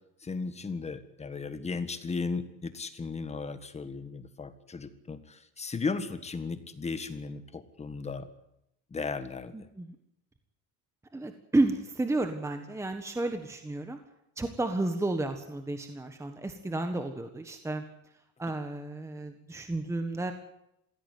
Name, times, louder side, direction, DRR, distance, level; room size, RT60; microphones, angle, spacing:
voice 1, 0.2-8.3 8.9-9.5, left 4 dB, 20° left, 11 dB, 1.7 m, -36 dB
voice 2, 9.5-9.9 11.1-14.0 14.4-17.8 18.4-20.3, right 2 dB, 10° right, 7 dB, 1.5 m, -31 dB
22.5 x 16.5 x 9.6 m, 0.81 s
cardioid pair, 150°, 34 cm